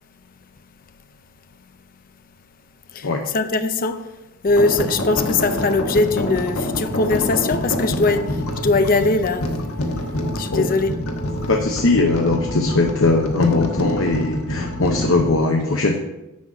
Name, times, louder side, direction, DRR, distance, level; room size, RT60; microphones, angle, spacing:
voice 1, 1.0-1.8 2.9-11.0, left 3 dB, 40° left, 0.6 m, -22 dB
sound 1, 4.5-15.3, left 1 dB, 80° left, 1.3 m, -26 dB
voice 2, 11.5-16.0, left 3 dB, 65° left, 0.9 m, -20 dB
11.0 x 4.0 x 7.3 m
head